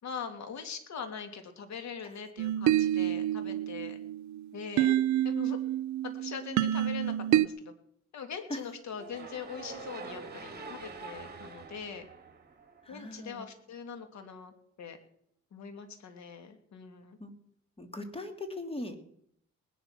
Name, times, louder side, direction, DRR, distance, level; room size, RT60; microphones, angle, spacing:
voice 1, 0.0-4.0 4.5-4.9 5.2-5.6 6.0-7.7 8.1-12.1 12.9-14.5 14.8-15.0 15.5-17.2, left 6 dB, 65° left, 7 dB, 2.8 m, -42 dB
sound 1, 2.4-7.5, right 12 dB, 70° right, 0.7 m, -28 dB
sound 2, 8.9-13.1, right 4 dB, 30° right, 3.4 m, -45 dB
voice 2, 12.8-13.5 17.2-17.3 17.8-19.0, left 2 dB, 20° left, 6 dB, 2.9 m, -40 dB
19.5 x 11.0 x 6.1 m, 0.70 s
cardioid pair, 90°, 30 cm